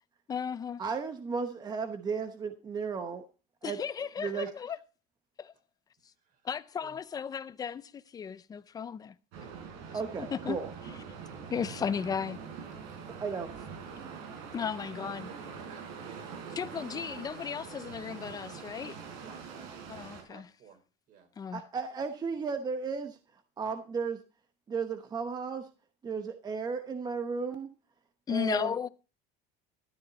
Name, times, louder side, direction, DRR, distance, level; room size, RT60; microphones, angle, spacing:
voice 1, 0.3-0.8 3.6-4.8 5.4-5.5 6.4-9.1 10.2-10.6 11.5-12.4 14.5-15.3 16.6-19.0 19.9-20.4 21.4-21.6 28.3-28.9, left 7 dB, 20° left, 0.5 m, -35 dB
voice 2, 0.8-3.3 3.6-3.8 4.2-4.5 9.9-10.7 13.1-13.5 13.9-14.2 21.5-23.2 23.6-24.2 24.7-25.7 26.0-27.7 28.3-28.8, right 5 dB, 20° right, 0.9 m, -34 dB
voice 3, 6.2-6.5 6.8-7.0 14.7-14.8 15.2-17.3 19.2-20.8 21.1-21.3, right 5 dB, 45° right, 4.3 m, -56 dB
sound 1, 9.3-20.2, right 6 dB, 85° right, 5.1 m, -44 dB
13.0 x 11.5 x 4.1 m
cardioid pair, 165°, 19 cm